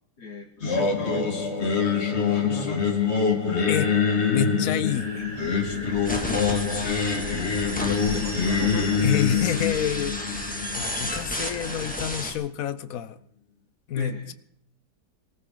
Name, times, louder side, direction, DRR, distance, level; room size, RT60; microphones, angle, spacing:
voice 1, 0.2-1.3 1.6-2.9 4.3-4.6 7.8-9.1 13.9-14.3, left 2 dB, 80° left, 3.2 m, -36 dB
Singing, 0.6-11.7, left 6 dB, 40° left, 2.1 m, -25 dB
voice 2, 4.3-5.3 9.0-10.2 10.7-13.2 13.9-14.3, left 9 dB, 60° left, 1.2 m, -28 dB
sound 1, 4.8-12.0, equal, 70° right, 6.1 m, -38 dB
sound 2, 6.0-12.3, left 1 dB, 5° left, 2.3 m, -33 dB
22.5 x 14.5 x 4.0 m
omnidirectional pair, 1.7 m